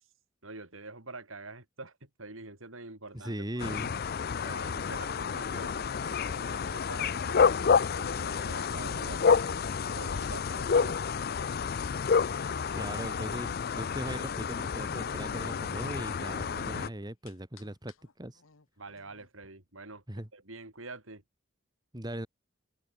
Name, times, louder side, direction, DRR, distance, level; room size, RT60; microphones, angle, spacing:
voice 1, 0.4-3.4 4.4-7.5 7.9-11.0 18.8-21.2, right 3 dB, 80° right, 5.1 m, -46 dB
sound 1, 3.0-3.7 4.1-8.4 8.8-9.7 10.5-10.6 10.9-11.6 12.1-16.5 17.0-19.3, left 5 dB, 85° left, 1.5 m, -50 dB
voice 2, 3.1-4.0 12.7-18.4 20.1-20.3 21.9-22.3, right 1 dB, 20° right, 2.2 m, -39 dB
sound 2, 3.6-16.9, left 6 dB, 50° left, 0.5 m, -29 dB
open air
head